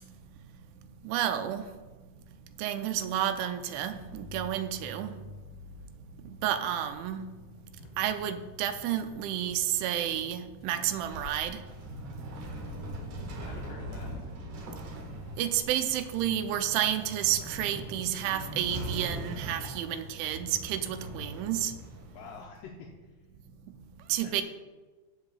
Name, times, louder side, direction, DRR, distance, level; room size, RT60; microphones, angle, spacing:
voice 1, 1.0-1.6 2.6-5.2 6.3-7.3 8.0-11.6 15.4-21.7 24.1-24.4, right 11 dB, 85° right, 8 dB, 3.0 m, -30 dB
sound 1, 3.8-20.6, left 2 dB, 60° left, 3.0 m, -51 dB
sound 2, 10.9-22.6, right 1 dB, 55° right, 2.7 m, -41 dB
voice 2, 13.4-14.1 22.1-23.1 24.2-24.4, left 5 dB, 80° left, -1 dB, 2.5 m, -46 dB
15.5 x 7.0 x 2.4 m, 1.3 s
omnidirectional pair, 5.4 m